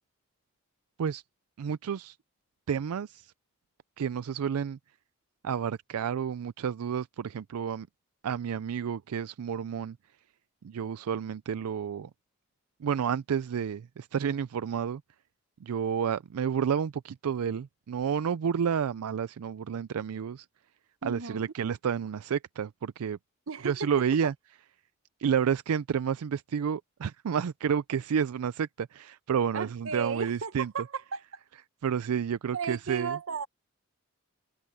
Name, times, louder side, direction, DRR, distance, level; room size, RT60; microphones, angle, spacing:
voice 1, 1.6-2.2 2.7-3.3 4.0-4.8 5.4-7.9 8.2-10.0 10.6-12.1 12.8-15.0 15.6-20.5 21.0-23.2 23.6-24.3 25.2-30.7 31.8-33.2, right 7 dB, 85° right, 0.4 m, -30 dB
voice 2, 21.0-21.5 23.5-23.9 29.5-31.2 32.5-33.5, right 5 dB, 70° right, 0.9 m, -35 dB
head